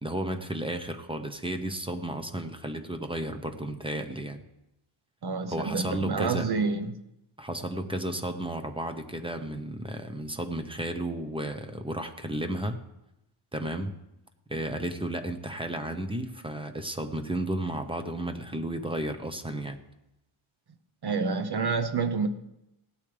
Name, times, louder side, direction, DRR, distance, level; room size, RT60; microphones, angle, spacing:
voice 1, 0.0-4.4 5.5-6.5 7.4-12.8 13.5-13.9 14.5-19.8, right 1 dB, 10° right, 7 dB, 0.9 m, -33 dB
voice 2, 5.2-7.0 21.0-22.3, right 4 dB, 50° right, 9 dB, 0.9 m, -28 dB
17.5 x 12.5 x 3.4 m, 0.87 s
wide cardioid pair, 170°, 50 cm